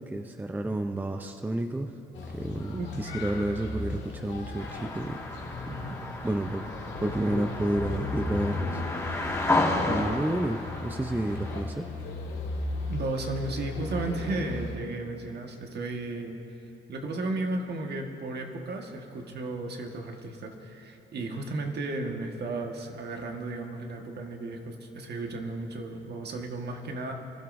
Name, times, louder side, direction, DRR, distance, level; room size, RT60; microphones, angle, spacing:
voice 1, 0.1-1.9 2.3-5.2 6.2-6.7 7.0-8.8 9.8-11.8, right 1 dB, 10° right, 6 dB, 0.6 m, -30 dB
sound 1, 2.1-14.7, left 3 dB, 65° left, 2.1 m, -36 dB
sound 2, 4.6-11.6, left 2 dB, 15° left, 1.9 m, -32 dB
voice 2, 12.9-16.4 16.9-27.1, right 2 dB, 55° right, 3 dB, 1.5 m, -34 dB
24.0 x 12.0 x 2.6 m, 2.8 s
cardioid pair, 90°, 20 cm